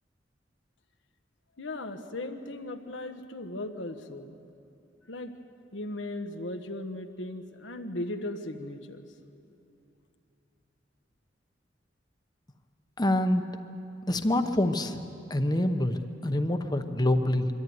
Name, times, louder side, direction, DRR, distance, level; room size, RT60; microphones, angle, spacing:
voice 1, 1.6-4.4 5.1-5.3 5.7-9.0, left 1 dB, 90° left, 6 dB, 1.4 m, -37 dB
voice 2, 13.0-13.4 14.0-15.0 15.3-17.5, left 1 dB, 20° left, 7 dB, 0.9 m, -26 dB
24.0 x 13.5 x 9.4 m, 2.7 s
head